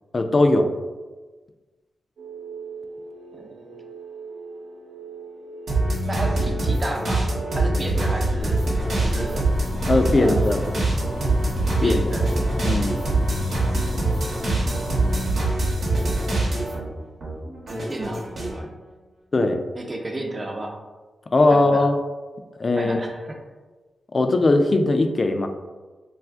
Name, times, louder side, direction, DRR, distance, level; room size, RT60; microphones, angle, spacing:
voice 1, 0.1-0.7 9.9-10.6 11.8-12.1 12.6-13.0 19.3-19.6 21.3-22.0 22.6-23.0 24.1-25.5, left 2 dB, 45° left, 6 dB, 0.3 m, -19 dB
sound 1, 2.2-7.9, right 5 dB, 90° right, 0.4 m, -39 dB
voice 2, 3.3-3.7 6.0-8.7 9.0-9.4 10.2-10.6 11.8-12.3 17.7-18.7 19.7-20.8 21.5-21.9 22.7-23.4, right 1 dB, 40° right, 2 dB, 0.5 m, -32 dB
sound 2, 5.7-16.9 17.2-18.6, right 2 dB, 70° right, 0.9 m, -24 dB
sound 3, 8.4-15.2, equal, 80° left, 0.8 m, -32 dB
2.4 x 2.4 x 3.4 m, 1.3 s
cardioid pair, 45°, 0 cm